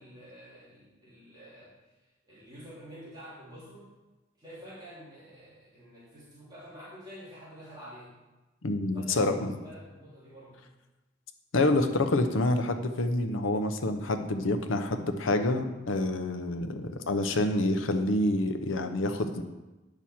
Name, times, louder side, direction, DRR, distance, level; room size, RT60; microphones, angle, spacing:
voice 1, 0.0-1.7 2.2-3.9 4.4-8.1 8.9-10.7, equal, 20° right, -10 dB, 2.7 m, -48 dB
voice 2, 8.6-9.5 11.5-19.4, left 2 dB, 75° left, 7 dB, 0.7 m, -27 dB
8.8 x 6.1 x 4.3 m, 1.1 s
head